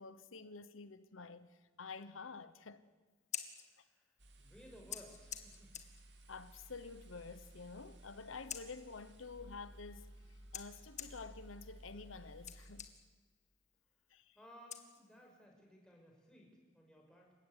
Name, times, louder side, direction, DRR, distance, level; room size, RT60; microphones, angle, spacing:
voice 1, 0.0-2.9 6.3-12.9 14.1-14.4, left 4 dB, 85° left, 1.1 m, -50 dB
Scissors, 3.1-15.5, left 9 dB, 35° left, 1.9 m, -52 dB
voice 2, 3.5-5.7 14.3-17.3, equal, 5° left, 6.0 m, -59 dB
sound 1, 4.2-12.9, right 1 dB, 60° right, 3.0 m, -57 dB
28.5 x 16.5 x 9.9 m
head